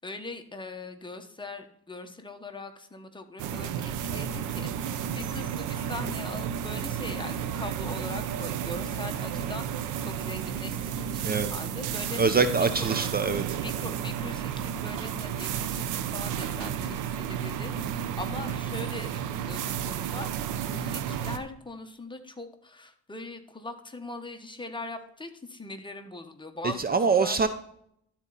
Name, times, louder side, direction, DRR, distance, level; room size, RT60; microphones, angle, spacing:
voice 1, 0.0-3.7 4.0-12.2 12.6-12.9 13.6-27.4, left 2 dB, 15° left, 6 dB, 1.1 m, -41 dB
sound 1, 3.4-21.4, right 9 dB, 90° right, 0.7 m, -32 dB
voice 2, 12.2-13.4 26.8-27.5, right 4 dB, 30° right, 10 dB, 0.6 m, -24 dB
12.5 x 4.3 x 4.0 m, 0.70 s
cardioid pair, 90°, 30 cm